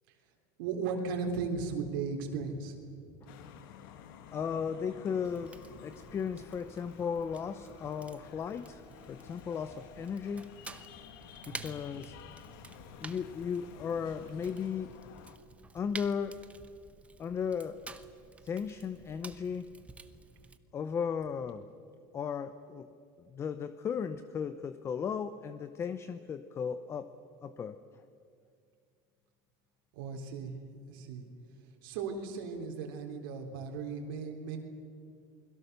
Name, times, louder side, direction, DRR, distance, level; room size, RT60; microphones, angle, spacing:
voice 1, 0.6-2.8 11.4-11.7 29.9-30.5 30.9-31.2 31.8-34.6, right 5 dB, 80° right, 1 dB, 3.5 m, -36 dB
sound 1, 3.3-15.4, left 8 dB, 80° left, 1.8 m, -52 dB
voice 2, 4.3-8.8 9.1-10.5 11.5-12.2 13.0-15.0 15.7-16.4 17.2-17.8 18.4-19.7 20.7-21.7 22.1-22.9 23.3-27.1 27.4-27.8, left 7 dB, 20° left, 12 dB, 0.7 m, -36 dB
Fire, 5.2-20.6, right 4 dB, 10° right, 0.9 m, -51 dB
28.5 x 21.5 x 6.8 m, 2.3 s
cardioid pair, 155°, 11 cm